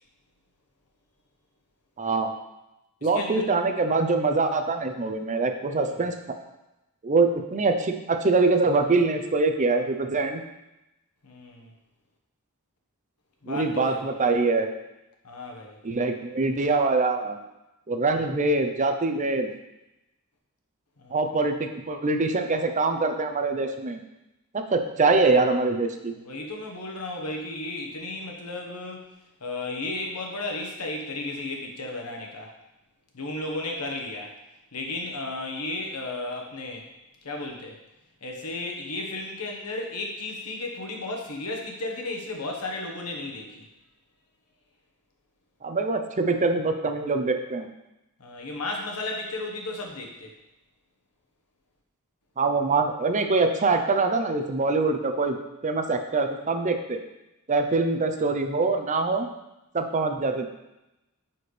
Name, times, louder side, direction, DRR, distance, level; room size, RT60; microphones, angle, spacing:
voice 1, 2.0-2.3 3.0-6.1 7.0-10.4 13.5-14.7 15.8-17.4 17.9-19.5 21.1-24.0 24.5-26.1 45.6-47.7 52.4-55.4 55.6-57.0 57.5-59.3 59.7-60.4, right 3 dB, 35° right, 6 dB, 0.6 m, -24 dB
voice 2, 3.0-3.5 5.7-6.1 11.2-11.7 13.4-14.0 15.2-15.8 21.0-21.3 26.1-29.1 29.4-32.5 33.1-34.3 34.7-36.9 37.2-37.8 38.2-43.6 48.2-50.3, left 2 dB, 90° left, 1 dB, 1.3 m, -34 dB
9.4 x 4.3 x 3.3 m, 0.94 s
head